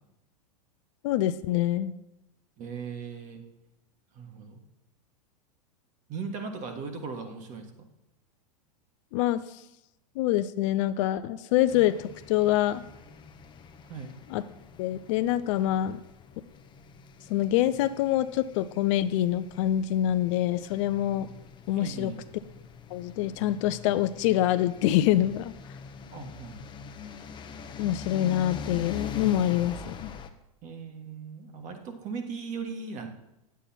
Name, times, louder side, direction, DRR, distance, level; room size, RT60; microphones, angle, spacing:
voice 1, 1.0-1.9 9.1-9.4 10.2-12.8 14.3-14.4 14.8-16.0 17.3-21.3 21.7-22.1 22.9-25.5 27.8-30.1, left 13 dB, 50° left, 13 dB, 0.5 m, -25 dB
voice 2, 2.6-3.4 4.1-4.6 6.1-7.7 13.9-14.1 21.8-22.2 26.1-26.6 30.6-33.1, right 5 dB, 40° right, 5 dB, 1.6 m, -38 dB
sound 1, 11.7-30.3, left 6 dB, 25° left, 0.8 m, -44 dB
9.0 x 8.3 x 4.3 m, 0.88 s
hypercardioid pair, 105°, 20 cm